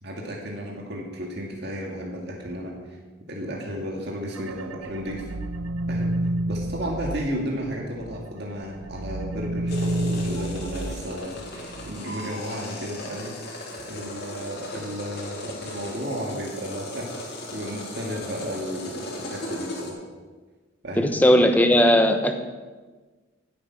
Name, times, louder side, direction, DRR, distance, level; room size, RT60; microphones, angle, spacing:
voice 1, 0.0-3.0 3.3-5.3 5.9-6.2 6.5-13.4 13.8-20.0 20.8-21.1, equal, 50° right, -1 dB, 2.1 m, -33 dB
sound 1, 4.3-8.3 8.6-12.0, right 1 dB, 85° right, 0.6 m, -30 dB
sound 2, 9.7-19.9, left 1 dB, 50° left, 3.2 m, -37 dB
voice 2, 21.0-22.3, equal, 10° left, 6 dB, 1.0 m, -17 dB
16.0 x 8.9 x 5.9 m, 1.3 s
head